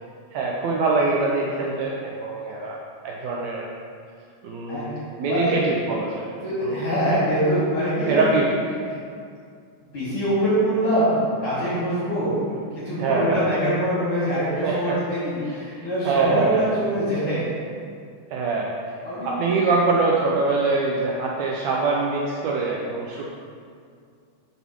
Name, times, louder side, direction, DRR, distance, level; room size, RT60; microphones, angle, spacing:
voice 1, 0.3-2.8 3.0-3.7 4.4-4.9 5.2-6.2 6.6-6.8 8.1-8.6 13.0-13.4 14.6-15.0 15.4-16.7 18.3-18.7 19.2-23.2, right 3 dB, 90° right, -3 dB, 1.5 m, -23 dB
voice 2, 4.7-5.5 6.4-8.3 8.9-9.0 9.9-17.4 19.0-19.3, equal, 50° left, -11 dB, 2.1 m, -24 dB
5.6 x 4.0 x 6.1 m, 2.2 s
omnidirectional pair, 3.9 m